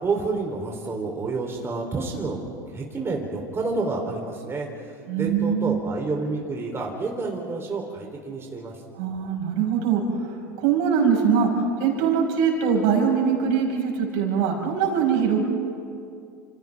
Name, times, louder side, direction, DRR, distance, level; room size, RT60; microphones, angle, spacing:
voice 1, 0.0-2.4 2.7-4.7 5.2-8.7, right 3 dB, 25° right, 0 dB, 3.6 m, -29 dB
voice 2, 5.1-5.8 9.0-10.2 10.6-11.5 11.8-15.4, right 7 dB, 60° right, 0 dB, 5.8 m, -22 dB
29.5 x 28.0 x 3.6 m, 2.4 s
hypercardioid pair, 85°, 11 cm